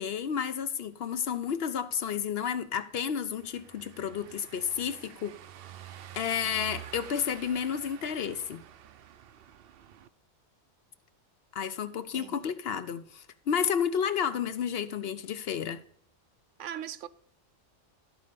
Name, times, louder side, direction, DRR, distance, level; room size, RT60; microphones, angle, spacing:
voice 1, 0.0-5.3 6.1-8.6 11.5-15.8, left 7 dB, 60° left, 0.8 m, -31 dB
Car passing by / Engine, 3.4-10.1, right 11 dB, 60° right, 0.7 m, -48 dB
voice 2, 16.6-17.1, right 10 dB, 85° right, 1.0 m, -39 dB
12.5 x 4.2 x 6.7 m
omnidirectional pair, 1.2 m